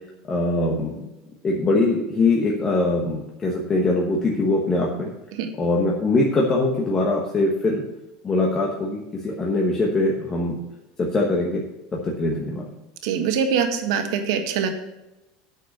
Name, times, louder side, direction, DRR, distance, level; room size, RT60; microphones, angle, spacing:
voice 1, 0.3-1.0 1.4-5.1 5.6-7.8 8.2-10.6 11.0-11.6 11.9-12.6, left 2 dB, 15° left, -2 dB, 1.1 m, -22 dB
voice 2, 13.0-14.7, right 7 dB, 70° right, 6 dB, 1.5 m, -23 dB
9.0 x 6.5 x 6.6 m, 0.97 s
cardioid pair, 175°, 3 cm